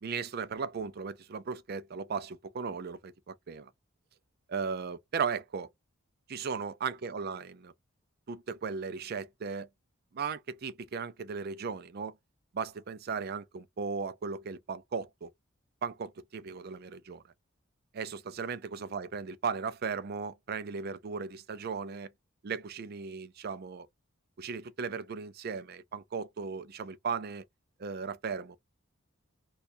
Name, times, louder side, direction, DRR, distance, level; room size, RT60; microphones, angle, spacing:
voice 1, 0.0-3.7 4.5-5.7 6.3-7.7 8.3-9.7 10.1-12.1 12.5-15.3 15.8-17.2 17.9-22.1 22.4-23.9 24.4-27.4 27.8-28.6, right 5 dB, 45° right, 0.4 m, -36 dB
2.7 x 2.3 x 4.1 m
head